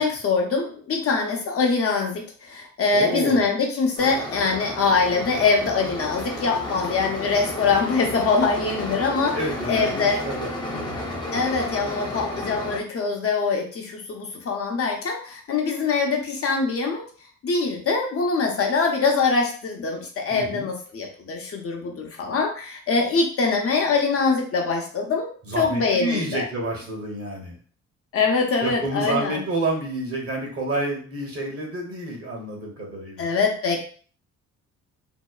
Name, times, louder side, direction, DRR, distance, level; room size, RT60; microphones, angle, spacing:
voice 1, 0.0-9.4 9.7-10.2 11.3-17.0 17.4-25.3 25.5-26.4 28.1-29.4 33.2-33.8, left 4 dB, 50° left, 1 dB, 0.7 m, -23 dB
voice 2, 2.9-3.4 9.3-11.4 20.3-20.7 25.4-27.6 28.6-33.3, right 2 dB, 50° right, -1 dB, 1.0 m, -29 dB
sound 1, 4.0-12.8, left 1 dB, 15° left, 0.6 m, -32 dB
2.8 x 2.0 x 2.3 m, 0.43 s
cardioid pair, 90°, 30 cm